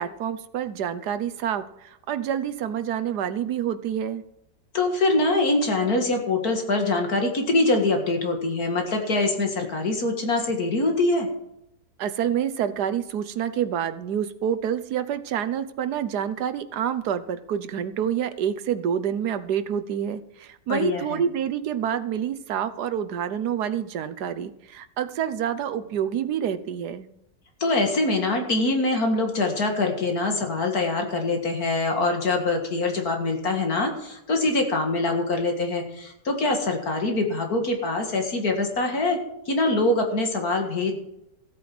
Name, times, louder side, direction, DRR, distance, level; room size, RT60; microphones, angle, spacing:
voice 1, 0.0-4.2 12.0-27.1, right 9 dB, 70° right, 11 dB, 1.4 m, -27 dB
voice 2, 4.7-11.3 20.7-21.2 27.6-39.2 39.5-40.9, left 2 dB, 60° left, 3 dB, 2.4 m, -24 dB
15.0 x 8.8 x 6.0 m, 0.82 s
omnidirectional pair, 1.8 m